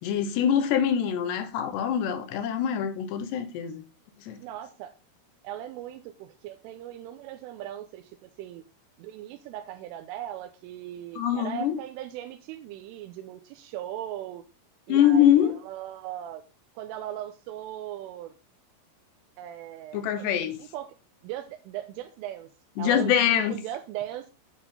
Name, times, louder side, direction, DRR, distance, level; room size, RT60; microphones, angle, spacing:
voice 1, 0.0-3.8 4.2-4.4 11.2-11.8 14.9-15.6 19.9-20.6 22.8-23.6, left 9 dB, 70° left, 2.8 m, -24 dB
voice 2, 4.4-4.9 5.4-8.6 9.0-14.4 14.9-16.4 16.8-18.3 19.4-20.9 21.2-22.5 22.8-23.1 23.5-24.3, right 12 dB, 85° right, 3.3 m, -38 dB
11.0 x 9.3 x 3.8 m
omnidirectional pair, 5.8 m